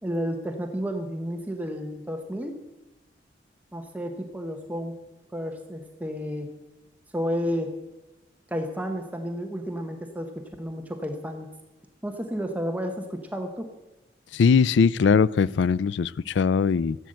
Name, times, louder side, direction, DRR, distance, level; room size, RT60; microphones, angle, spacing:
voice 1, 0.0-2.6 3.7-5.0 5.3-6.5 7.1-7.7 8.5-11.5 12.0-13.7, equal, 10° right, 4 dB, 1.0 m, -31 dB
voice 2, 14.3-17.0, left 5 dB, 75° left, 21 dB, 0.4 m, -21 dB
14.5 x 8.1 x 7.6 m, 1.1 s
head